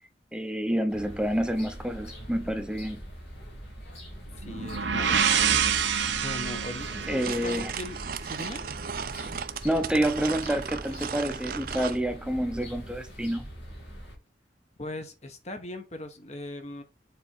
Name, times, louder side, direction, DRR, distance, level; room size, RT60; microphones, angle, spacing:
voice 1, 0.3-3.0 7.1-7.7 9.6-13.5, right 1 dB, 5° right, 0.7 m, -28 dB
sound 1, 0.9-14.1, equal, 80° left, 3.1 m, -43 dB
voice 2, 4.4-5.8 6.0-8.6 14.8-16.8, left 1 dB, 35° left, 1.1 m, -39 dB
sound 2, 4.4-8.3, right 7 dB, 85° right, 0.9 m, -27 dB
sound 3, 6.8-12.0, right 6 dB, 50° right, 0.5 m, -36 dB
7.0 x 3.6 x 4.3 m
head